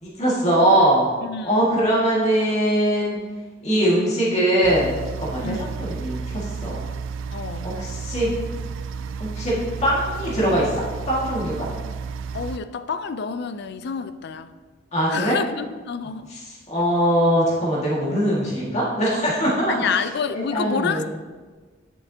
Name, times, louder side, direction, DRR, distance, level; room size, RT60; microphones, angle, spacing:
voice 1, 0.0-1.1 1.4-3.2 3.6-6.8 7.6-8.3 9.2-9.5 9.8-11.7 14.9-15.4 16.3-16.4 16.7-19.9 20.3-21.0, right 1 dB, 35° left, -7 dB, 1.8 m, -21 dB
voice 2, 1.2-1.6 5.4-5.7 7.3-7.7 12.3-14.5 15.1-16.3 19.7-21.0, left 6 dB, 60° left, 11 dB, 0.4 m, -28 dB
sound 1, 4.6-12.6, right 5 dB, 90° right, 0.4 m, -32 dB
9.9 x 6.7 x 2.8 m, 1.4 s
head